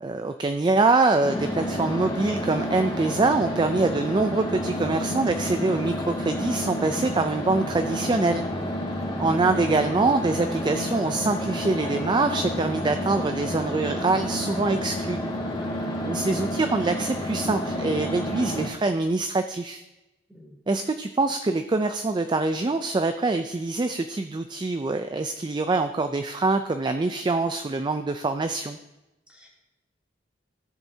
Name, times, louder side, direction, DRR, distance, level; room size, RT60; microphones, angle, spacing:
voice 1, 0.0-8.4 9.2-15.2 16.0-19.8 20.7-28.8, right 3 dB, 25° right, 8 dB, 0.4 m, -24 dB
sound 1, 1.2-18.7, equal, 25° left, 1.9 m, -30 dB
voice 2, 9.1-9.5 15.6-16.1 20.3-20.5 29.3-29.5, equal, 5° right, -3 dB, 2.8 m, -46 dB
16.0 x 7.2 x 2.8 m, 0.98 s
head